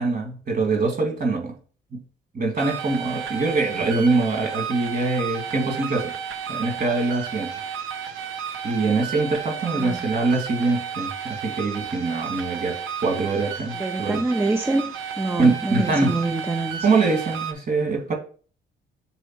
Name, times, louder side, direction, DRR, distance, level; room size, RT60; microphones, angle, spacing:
voice 1, 0.0-1.5 1.9-2.0 2.3-6.1 6.5-7.5 8.6-14.2 15.4-16.1 16.8-18.1, right 3 dB, 45° right, 2 dB, 2.4 m, -23 dB
sound 1, 2.6-17.5, right 7 dB, 85° right, 0.9 m, -32 dB
voice 2, 9.7-10.0 13.7-16.9, right 2 dB, 10° right, 6 dB, 0.5 m, -26 dB
7.1 x 3.4 x 4.5 m, 0.40 s
cardioid pair, 90°, 20 cm